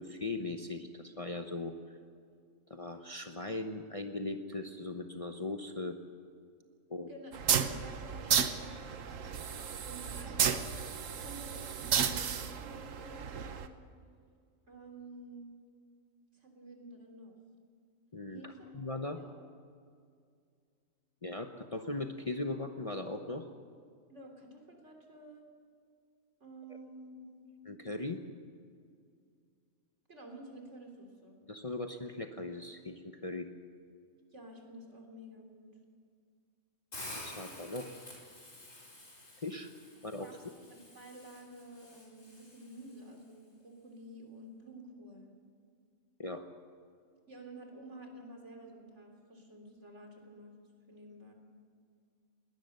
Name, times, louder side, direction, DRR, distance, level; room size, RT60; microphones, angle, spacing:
voice 1, 0.0-1.7 2.7-6.0 6.9-7.1 18.1-19.2 21.2-23.5 27.7-28.2 31.5-33.5 37.1-37.9 39.4-39.7 40.0-40.3 46.2-46.4, left 2 dB, 30° left, 5 dB, 1.0 m, -39 dB
voice 2, 7.1-9.3 9.9-13.7 14.7-15.5 16.3-17.4 18.3-18.8 19.1-19.4 24.1-25.5 26.4-27.5 30.1-31.4 34.3-35.7 40.2-40.4 40.7-45.3 47.3-50.5 50.9-51.3, right 1 dB, 60° right, 2 dB, 3.8 m, -51 dB
sound 1, 7.3-13.7, right 7 dB, 75° right, 1.4 m, -33 dB
Hiss, 36.9-43.0, left 1 dB, 70° left, 5.3 m, -50 dB
21.0 x 18.5 x 6.7 m, 2.2 s
omnidirectional pair, 1.4 m